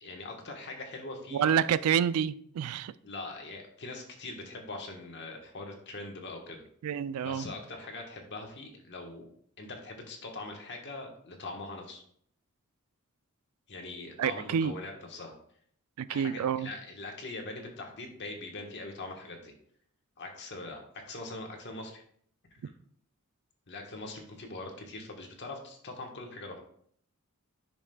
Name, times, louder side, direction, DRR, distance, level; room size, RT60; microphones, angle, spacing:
voice 1, 0.0-1.6 3.0-6.6 7.2-9.3 9.6-12.0 13.7-15.3 16.1-19.5 20.2-22.0 22.6-22.7 23.7-26.6, left 2 dB, 55° left, 1.3 m, -42 dB
voice 2, 1.3-2.9 6.8-7.5 14.2-14.7 16.0-16.7, right 8 dB, 75° right, 0.3 m, -28 dB
11.0 x 6.0 x 2.3 m
head